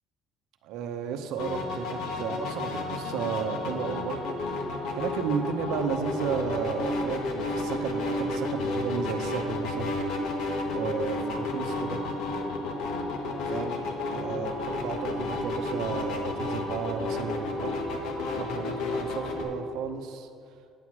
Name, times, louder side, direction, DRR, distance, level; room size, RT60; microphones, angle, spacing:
voice 1, 0.6-4.3 5.0-10.0 10.7-12.0 13.4-20.3, right 7 dB, 80° right, 6 dB, 0.7 m, -33 dB
sound 1, 1.4-19.4, left 2 dB, 80° left, 1.1 m, -31 dB
9.4 x 4.7 x 7.3 m, 2.4 s
cardioid pair, 130°, 0 cm